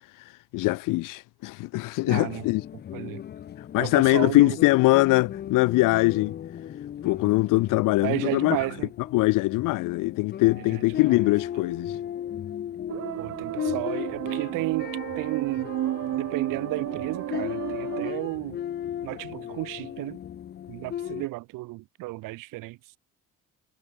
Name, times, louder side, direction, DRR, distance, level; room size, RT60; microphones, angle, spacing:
voice 1, 0.0-2.6 3.7-6.3 7.0-8.6 9.1-12.0, left 21 dB, 75° left, 1.0 m, -22 dB
sound 1, 2.1-21.3, left 10 dB, 30° left, 0.9 m, -37 dB
voice 2, 2.1-2.4 2.9-3.2 3.8-4.6 8.0-8.9 10.7-10.8 13.2-15.7 16.2-18.6 19.0-20.2 20.7-22.8, right 20 dB, 75° right, 2.0 m, -33 dB
sound 2, 12.9-18.1, right 14 dB, 50° right, 2.9 m, -32 dB
cardioid pair, 180°, 32 cm